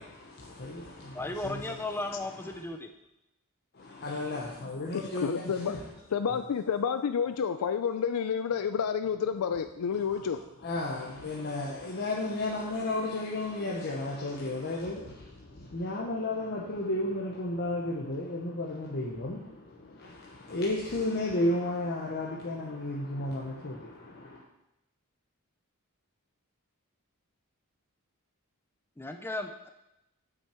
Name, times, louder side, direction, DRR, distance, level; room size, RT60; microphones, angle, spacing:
voice 1, 0.0-2.0 2.5-2.6 3.7-5.9 10.6-24.4, left 1 dB, 50° left, 1.0 m, -33 dB
voice 2, 1.1-2.9 29.0-29.7, left 2 dB, 10° left, 0.4 m, -35 dB
voice 3, 4.9-5.7 6.1-10.4, left 7 dB, 90° left, 0.4 m, -30 dB
8.0 x 6.2 x 4.4 m
head